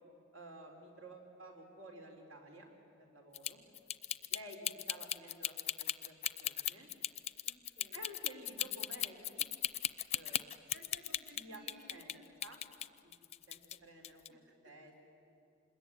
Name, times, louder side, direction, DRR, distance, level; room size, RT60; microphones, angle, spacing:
voice 1, 0.3-2.7 3.0-3.6 4.3-6.9 7.9-9.5 10.1-10.4 11.3-11.6 11.9-12.6 13.0-13.1 13.5-15.1, right 1 dB, 80° right, 2 dB, 4.3 m, -53 dB
sound 1, 3.3-12.1 12.4-13.8 14.0-14.3, left 11 dB, 30° left, 0.5 m, -37 dB
voice 2, 7.4-8.1 10.7-12.4 14.3-14.9, right 1 dB, 55° right, 3 dB, 3.9 m, -60 dB
26.5 x 21.5 x 9.6 m, 2.7 s
head